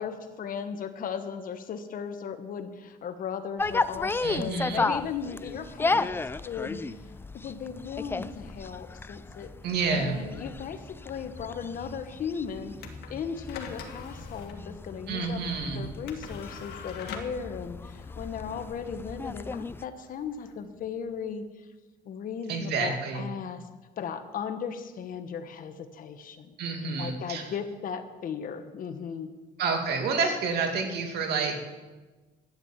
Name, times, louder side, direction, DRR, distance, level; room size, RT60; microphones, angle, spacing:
voice 1, 0.0-6.8 7.4-9.5 9.9-15.4 15.7-21.7 22.0-23.6 24.0-26.6 27.0-29.3, left 7 dB, 55° left, 8 dB, 1.3 m, -37 dB
sound 1, 3.6-19.8, left 3 dB, 15° left, 0.4 m, -34 dB
voice 2, 4.2-4.8 9.6-10.2 15.1-15.9 22.5-23.2 26.6-27.4 29.6-31.6, right 4 dB, 75° right, 4 dB, 2.4 m, -29 dB
sound 2, 12.8-21.2, left 5 dB, 75° left, 1.7 m, -45 dB
12.0 x 9.3 x 7.3 m, 1.3 s
cardioid pair, 110°, 17 cm